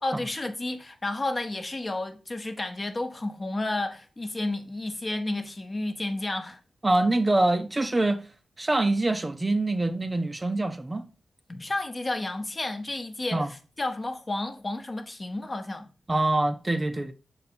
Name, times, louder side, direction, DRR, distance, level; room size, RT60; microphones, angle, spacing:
voice 1, 0.0-6.6 11.5-15.9, left 2 dB, 30° left, 0.9 m, -31 dB
voice 2, 6.8-8.2 8.6-11.0 13.3-13.5 16.1-17.1, right 2 dB, 25° right, 0.6 m, -24 dB
6.5 x 4.2 x 4.2 m
cardioid pair, 75°, 0 cm